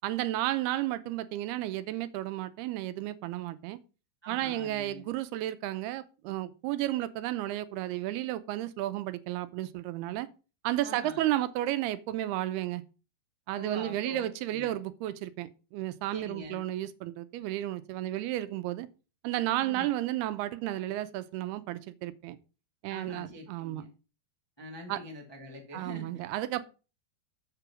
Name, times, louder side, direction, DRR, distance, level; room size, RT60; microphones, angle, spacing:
voice 1, 0.0-3.8 4.3-10.3 10.6-12.8 13.5-18.9 19.2-22.4 22.8-23.9 24.9-25.0 25.7-26.6, right 14 dB, 80° right, 2.6 m, -33 dB
voice 2, 4.2-5.0 10.8-11.2 13.5-14.2 14.5-14.7 16.1-16.6 19.6-19.9 22.9-23.9 24.6-26.1, equal, 20° left, 0.7 m, -44 dB
7.6 x 6.8 x 6.1 m
omnidirectional pair, 4.7 m